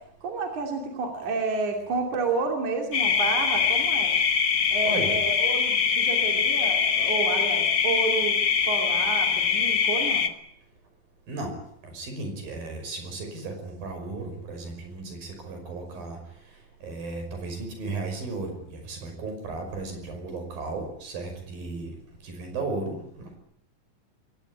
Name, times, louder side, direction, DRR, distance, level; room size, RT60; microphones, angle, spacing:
voice 1, 0.0-4.1 4.7-8.4 8.6-10.3, right 4 dB, 60° right, 2 dB, 4.2 m, -30 dB
sound 1, 2.9-10.3, left 6 dB, 45° left, 1.6 m, -23 dB
voice 2, 4.9-5.2 11.3-11.5 11.8-16.2 16.8-21.9 22.2-23.4, right 3 dB, 80° right, 6 dB, 7.3 m, -35 dB
22.5 x 19.0 x 9.9 m, 0.74 s
omnidirectional pair, 4.1 m